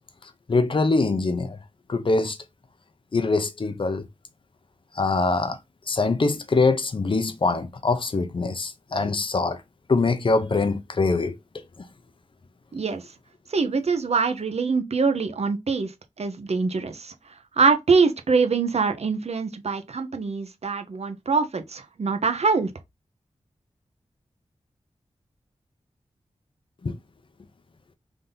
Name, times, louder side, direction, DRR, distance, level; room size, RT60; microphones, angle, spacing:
voice 1, 0.5-1.6 1.9-2.4 3.1-4.0 5.0-5.6 5.9-9.6 9.9-11.3 26.8-27.0, left 3 dB, 45° left, 0.6 m, -23 dB
voice 2, 12.7-13.0 13.5-17.1 17.6-22.7, right 4 dB, 60° right, 0.7 m, -24 dB
3.5 x 2.7 x 3.8 m
wide cardioid pair, 85°, 12 cm